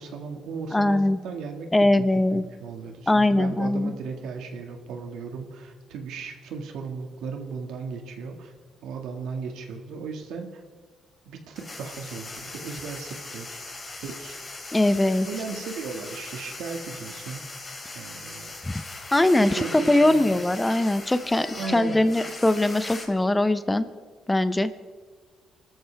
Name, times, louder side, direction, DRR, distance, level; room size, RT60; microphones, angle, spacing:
voice 1, 0.0-2.1 2.3-8.5 8.8-10.5 11.3-13.6 14.0-14.4 15.3-17.4 17.9-18.5 19.5-20.4 21.5-22.0, right 5 dB, 85° right, 4 dB, 2.0 m, -36 dB
voice 2, 0.7-1.2 1.7-2.4 3.1-3.9 14.7-15.3 19.1-23.9 24.3-24.7, left 1 dB, 15° left, 13 dB, 0.7 m, -21 dB
sound 1, 11.6-23.1, left 2 dB, 30° left, 2.9 m, -39 dB
25.0 x 13.0 x 3.5 m, 1.5 s
cardioid pair, 90°, 0 cm